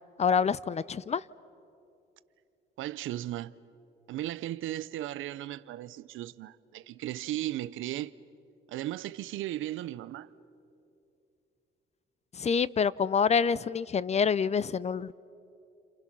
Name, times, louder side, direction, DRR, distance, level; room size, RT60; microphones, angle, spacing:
voice 1, 0.2-1.2 12.3-15.1, left 6 dB, 35° left, 0.5 m, -27 dB
voice 2, 2.8-3.6 4.1-8.1 8.7-10.3, right 14 dB, 85° right, 0.7 m, -36 dB
29.0 x 27.5 x 6.1 m
cardioid pair, 90°, 20 cm